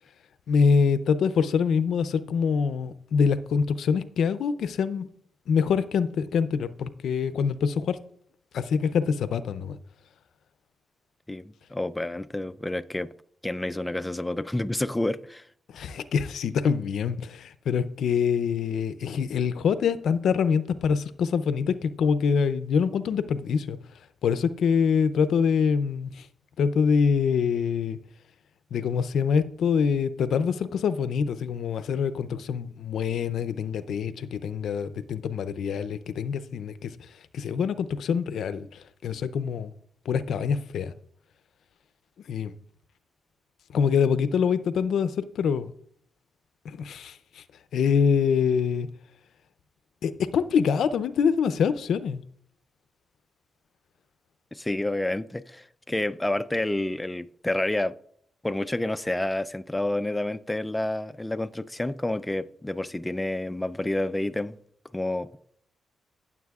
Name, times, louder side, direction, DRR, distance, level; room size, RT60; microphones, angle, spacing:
voice 1, 0.5-5.1 5.5-8.0 8.5-9.8 15.7-23.8 24.2-26.3 26.6-28.0 28.7-36.9 37.3-38.7 39.0-39.7 40.1-40.9 42.3-42.5 43.7-45.7 46.6-47.4 47.7-48.9 50.0-52.2, left 6 dB, 75° left, 0.5 m, -25 dB
voice 2, 11.3-13.1 13.4-15.5 54.5-58.0 58.4-64.6 64.9-65.4, left 1 dB, 10° left, 0.4 m, -29 dB
15.5 x 7.3 x 2.4 m
cardioid pair, 75°, 0 cm